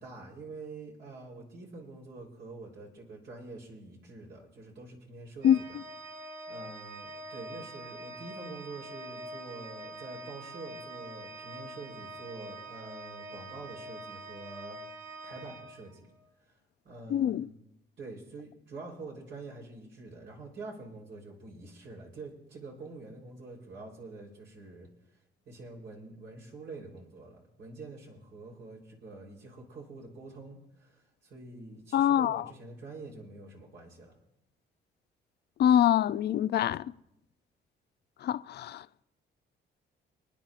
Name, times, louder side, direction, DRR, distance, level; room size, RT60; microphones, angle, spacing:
voice 1, 0.0-5.8 6.1-14.8 15.2-16.1 16.5-16.6 16.8-17.5 18.0-24.9 25.5-34.2, right 3 dB, 70° right, 3.8 m, -46 dB
Organ, 5.4-16.3, right 2 dB, 45° right, 3.5 m, -45 dB
voice 2, 17.1-17.5 31.9-32.4 35.6-36.8 38.2-38.8, left 10 dB, 55° left, 0.4 m, -24 dB
28.0 x 9.8 x 2.5 m
cardioid pair, 90°, 20 cm